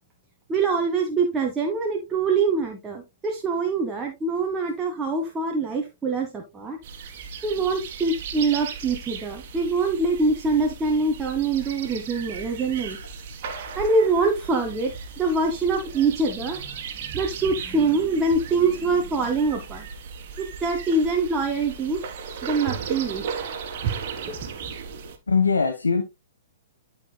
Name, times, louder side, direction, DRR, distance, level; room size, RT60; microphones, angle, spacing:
voice 1, 0.5-6.8 7.4-13.0 13.8-16.6 17.1-19.8 20.4-22.0 22.4-23.2 24.3-24.4, right 3 dB, 15° right, 1.3 m, -24 dB
sound 1, 6.8-25.2, right 6 dB, 45° right, 1.8 m, -36 dB
voice 2, 25.3-26.0, left 5 dB, 80° left, 1.3 m, -22 dB
13.0 x 5.3 x 2.2 m
figure-of-eight pair, 115°, 0 cm